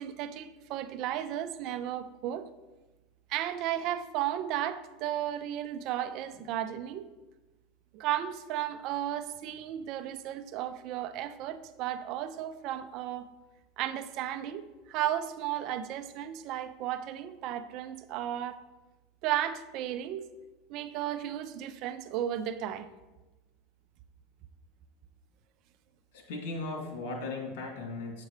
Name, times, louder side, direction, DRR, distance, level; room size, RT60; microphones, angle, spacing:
voice 1, 0.0-2.5 3.3-7.1 7.9-13.3 13.8-18.6 19.2-20.3 20.7-22.9, right 11 dB, 55° right, 11 dB, 0.5 m, -34 dB
voice 2, 26.1-28.2, left 3 dB, 75° left, 0 dB, 2.5 m, -37 dB
9.2 x 7.4 x 3.3 m, 1.1 s
supercardioid pair, 125°, 0 cm